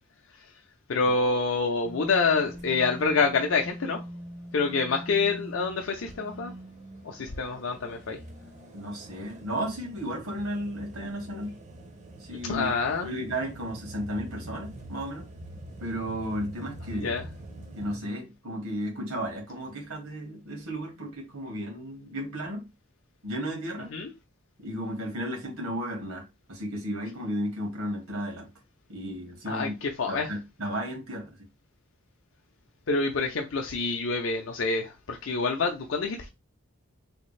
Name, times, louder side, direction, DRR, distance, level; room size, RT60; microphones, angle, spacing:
voice 1, 0.9-4.0 4.5-6.5 7.0-8.2 12.5-13.1 17.0-17.3 23.9-24.1 29.5-30.3 32.9-36.3, left 4 dB, 60° left, 0.5 m, -27 dB
sound 1, 1.8-18.0, right 1 dB, 35° right, 0.5 m, -44 dB
voice 2, 8.7-11.6 12.2-12.7 13.0-15.3 15.8-17.2 17.8-22.7 23.2-23.9 24.6-28.5 28.9-29.7 30.1-31.4, equal, 85° right, 1.7 m, -34 dB
3.5 x 2.4 x 3.2 m
head